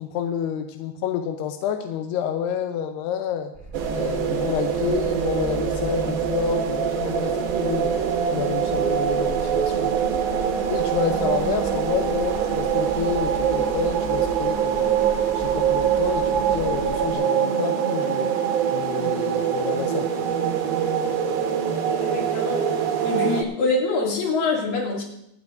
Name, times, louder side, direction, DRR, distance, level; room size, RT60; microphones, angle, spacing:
voice 1, 0.0-3.5 3.9-8.0 8.3-10.2 10.7-15.0 15.3-18.3 18.7-20.3, left 8 dB, 85° left, 6 dB, 2.4 m, -29 dB
sound 1, 3.5-17.1, right 2 dB, 20° left, 2.4 m, -38 dB
sound 2, 3.7-23.4, right 8 dB, 70° right, 2.5 m, -24 dB
voice 2, 22.0-22.7 23.0-25.0, left 3 dB, 50° left, -2 dB, 3.7 m, -25 dB
26.0 x 9.3 x 2.6 m, 0.80 s
omnidirectional pair, 5.4 m